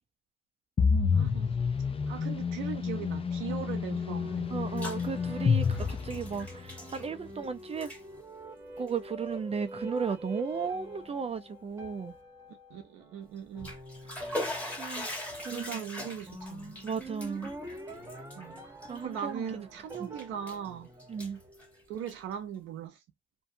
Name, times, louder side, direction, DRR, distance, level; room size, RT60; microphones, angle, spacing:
sound 1, 0.8-6.7, left 5 dB, 30° left, 0.5 m, -29 dB
voice 1, 1.1-1.6 2.1-4.5 12.7-13.7 15.5-16.8 18.4-18.6 19.0-20.9 21.9-23.0, right 9 dB, 90° right, 0.6 m, -39 dB
sound 2, 3.3-21.9, right 1 dB, 15° right, 0.9 m, -46 dB
Bathtub (filling or washing), 4.4-5.1 5.4-7.5 7.7-8.0 8.8-8.9 9.6-9.7 10.1-10.2 13.4-19.5 19.9-20.7 21.0-22.3, left 1 dB, 5° left, 1.3 m, -41 dB
voice 2, 4.5-7.9 8.8-12.1 14.8-15.8 16.8-17.5 18.9-19.4 20.0-20.1 21.1-21.4, right 6 dB, 30° right, 0.4 m, -35 dB
2.6 x 2.2 x 2.6 m
cardioid pair, 90°, 20 cm